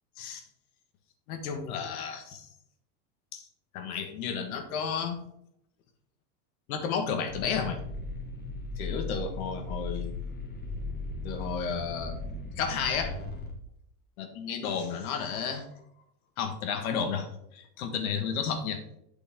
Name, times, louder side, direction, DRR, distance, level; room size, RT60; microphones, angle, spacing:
voice 1, 1.3-2.5 3.3-3.4 3.7-5.2 6.7-7.8 8.8-10.1 11.2-12.2 12.6-13.2 14.2-15.7 16.4-18.8, left 6 dB, 75° left, 7 dB, 1.7 m, -32 dB
sound 1, 7.3-13.5, left 2 dB, 20° left, 1.8 m, -37 dB
8.7 x 6.3 x 3.6 m, 0.76 s
supercardioid pair, 110°, 44 cm